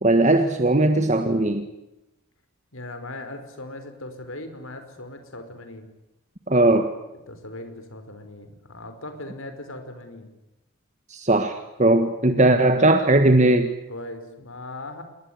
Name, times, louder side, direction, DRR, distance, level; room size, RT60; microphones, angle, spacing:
voice 1, 0.0-1.7 6.5-6.9 11.1-13.7, right 2 dB, 30° right, 7 dB, 1.6 m, -18 dB
voice 2, 2.7-5.9 7.3-10.3 13.9-15.0, left 2 dB, 65° left, 8 dB, 5.1 m, -38 dB
27.0 x 22.0 x 9.5 m, 0.93 s
head